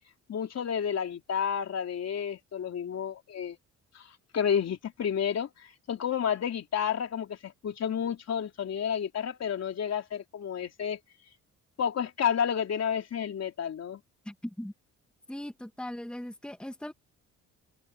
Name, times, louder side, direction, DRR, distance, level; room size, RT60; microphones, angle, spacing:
voice 1, 0.3-3.6 3.9-11.0 11.8-14.0, left 8 dB, 55° left, 3.6 m, -31 dB
voice 2, 14.3-14.7 15.3-16.9, left 1 dB, 5° left, 2.0 m, -39 dB
cardioid pair, 90°, 30 cm